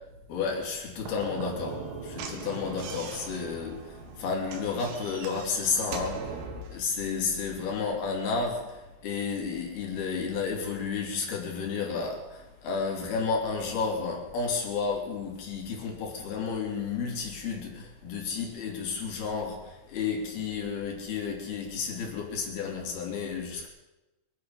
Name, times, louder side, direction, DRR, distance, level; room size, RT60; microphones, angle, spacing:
voice 1, 0.3-6.4 6.7-23.7, left 5 dB, 65° left, 4.6 m, -32 dB
Slam / Knock, 1.0-6.8, right 4 dB, 75° right, 3.8 m, -40 dB
24.0 x 10.0 x 5.7 m
omnidirectional pair, 5.0 m